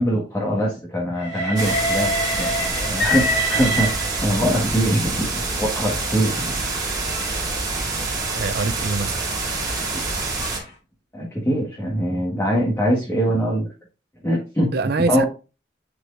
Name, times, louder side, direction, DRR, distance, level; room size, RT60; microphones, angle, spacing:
voice 1, 0.0-2.1 2.4-5.2 5.5-6.6 9.9-10.0 11.1-13.7 14.2-14.7 15.1-15.3, equal, 15° left, 1.6 m, -22 dB
Train, 1.2-4.6 5.4-10.7, equal, 65° left, 2.2 m, -28 dB
sound 1, 1.6-10.6, right 3 dB, 20° right, 2.9 m, -26 dB
voice 2, 8.3-9.3 14.7-15.2, right 4 dB, 55° right, 0.5 m, -24 dB
9.9 x 4.6 x 2.6 m
head